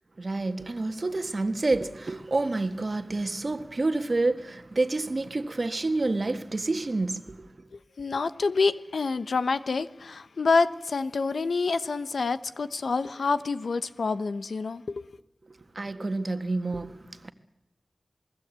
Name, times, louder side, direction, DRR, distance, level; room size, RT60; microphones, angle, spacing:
voice 1, 0.2-7.7 15.5-17.3, right 2 dB, 50° right, 1.6 m, -29 dB
voice 2, 7.7-15.0, left 4 dB, 90° left, 1.0 m, -27 dB
28.0 x 20.5 x 8.3 m
wide cardioid pair, 75°, 0 cm